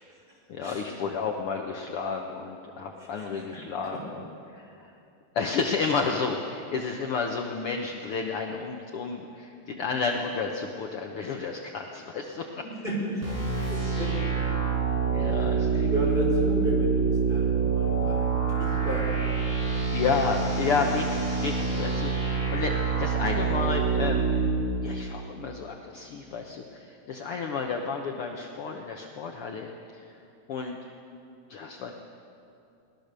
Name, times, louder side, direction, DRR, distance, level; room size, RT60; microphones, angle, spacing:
voice 1, 0.5-4.0 4.5-4.9 5.3-12.5 13.5-14.2 15.1-15.9 19.9-24.3 24.8-30.2 30.5-30.8 31.5-31.9, left 5 dB, 65° left, 2 dB, 1.4 m, -31 dB
voice 2, 3.0-3.6 3.9-4.0 12.6-13.3 13.7-14.6 15.3-19.2, right 1 dB, 15° right, -4 dB, 5.6 m, -33 dB
sound 1, 13.2-24.5, right 5 dB, 30° right, 7.4 m, -26 dB
22.5 x 19.0 x 6.8 m, 2.6 s
omnidirectional pair, 4.1 m